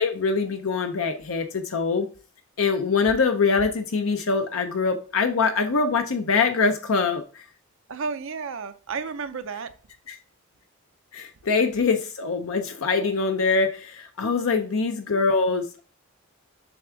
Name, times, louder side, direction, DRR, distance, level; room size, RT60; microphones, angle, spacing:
voice 1, 0.0-2.1 2.6-7.4 10.1-10.2 11.1-15.8, left 4 dB, 65° left, 0.6 m, -24 dB
voice 2, 7.9-9.7 14.4-14.7, right 5 dB, 60° right, 0.5 m, -33 dB
7.1 x 3.5 x 4.5 m
head